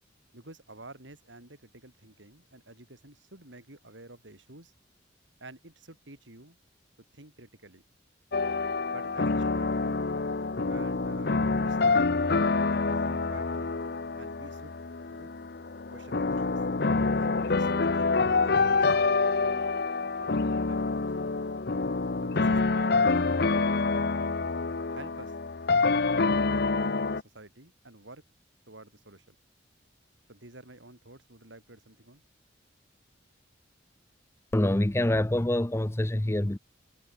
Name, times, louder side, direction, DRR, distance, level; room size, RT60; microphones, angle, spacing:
voice 1, 0.3-4.7 5.4-6.6 7.1-7.8 8.9-10.0 10.6-12.0 12.7-13.8 14.2-14.8 15.1-15.3 15.9-16.6 17.1-18.9 19.3-19.7 20.2-21.0 22.2-24.4 24.9-25.3 26.0-28.2 28.7-29.4 30.3-32.2, right 2 dB, 75° right, 4.8 m, -50 dB
sound 1, 8.3-27.2, left 3 dB, 55° left, 0.8 m, -27 dB
voice 2, 34.5-36.6, left 1 dB, 15° left, 0.6 m, -26 dB
head